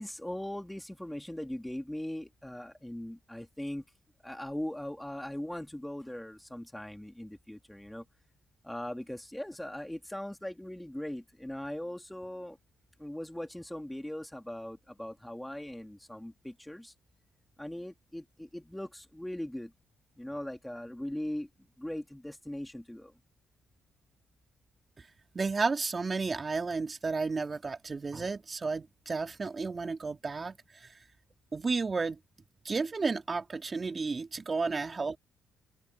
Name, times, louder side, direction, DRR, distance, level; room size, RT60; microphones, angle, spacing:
voice 1, 0.0-3.8 4.2-8.0 8.6-12.6 13.0-16.9 17.6-19.7 20.2-21.5 21.8-23.1, left 1 dB, 5° left, 2.8 m, -40 dB
voice 2, 25.3-31.0 31.5-32.2 32.6-35.2, right 4 dB, 30° right, 2.9 m, -32 dB
open air
cardioid pair, 90°, 0 cm